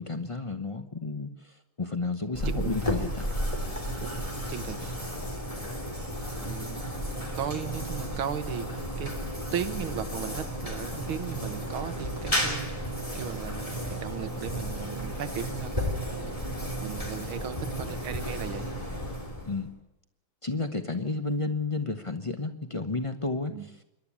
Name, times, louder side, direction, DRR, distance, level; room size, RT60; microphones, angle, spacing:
voice 1, 0.0-3.4 19.5-19.7 20.4-23.7, left 3 dB, 45° left, 7 dB, 0.4 m, -32 dB
sound 1, 2.3-19.7, equal, 15° left, 3.3 m, -33 dB
voice 2, 2.5-2.8 4.0-4.8 6.3-7.0 7.3-9.2 9.5-12.7 13.2-18.7 23.5-23.7, right 9 dB, 90° right, 11 dB, 2.0 m, -37 dB
27.0 x 12.0 x 8.7 m, 0.88 s
omnidirectional pair, 2.2 m